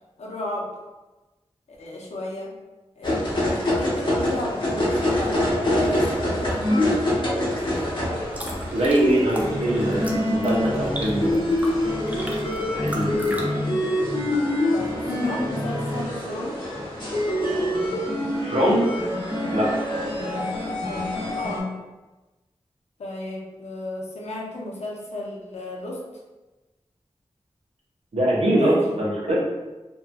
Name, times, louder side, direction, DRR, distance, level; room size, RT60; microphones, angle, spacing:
voice 1, 0.2-0.7 1.7-2.5 3.0-6.6 7.5-8.0 14.7-16.6 20.7-21.0 21.4-21.7 23.0-26.0 28.5-29.0, left 1 dB, 85° left, -3 dB, 0.6 m, -34 dB
sound 1, 3.0-21.6, left 1 dB, 50° left, 0.9 m, -25 dB
sound 2, 8.1-13.4, right 1 dB, 15° right, 0.5 m, -37 dB
voice 2, 8.7-11.5 12.6-13.6 18.3-18.9 19.5-19.7 28.1-29.4, right 1 dB, 75° right, -5 dB, 0.8 m, -23 dB
2.9 x 2.6 x 2.2 m, 1.1 s
wide cardioid pair, 75°, 11 cm